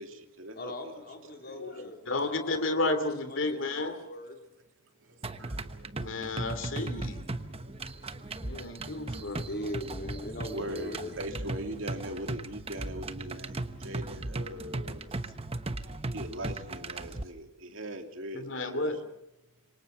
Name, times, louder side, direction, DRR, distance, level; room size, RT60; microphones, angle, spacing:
voice 1, 0.0-0.7 1.5-1.6 5.4-6.0 7.1-8.8 9.1-9.2 10.5-15.1 16.1-18.9, right 1 dB, 70° right, 5 dB, 2.8 m, -41 dB
voice 2, 0.6-4.4 8.0-8.1 8.9-11.2, left 1 dB, 50° left, 3 dB, 3.8 m, -41 dB
voice 3, 2.1-4.0 6.0-7.2 8.4-9.4 14.5-14.6 18.3-19.0, left 2 dB, 65° left, 9 dB, 2.9 m, -32 dB
sound 1, 5.2-17.2, right 2 dB, 30° right, 1.1 m, -37 dB
27.0 x 24.5 x 5.8 m, 0.86 s
head